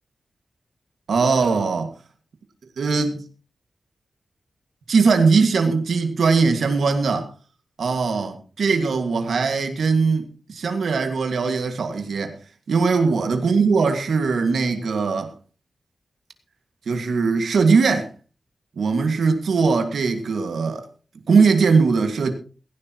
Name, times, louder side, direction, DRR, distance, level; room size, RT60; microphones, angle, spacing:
voice 1, 1.1-2.0 2.8-3.2 4.9-7.3 7.8-12.4 12.7-15.3 16.9-18.1 18.8-20.9 21.3-22.3, right 4 dB, 80° right, 1.9 m, -20 dB
17.0 x 16.5 x 3.0 m
wide cardioid pair, 170°, 0 cm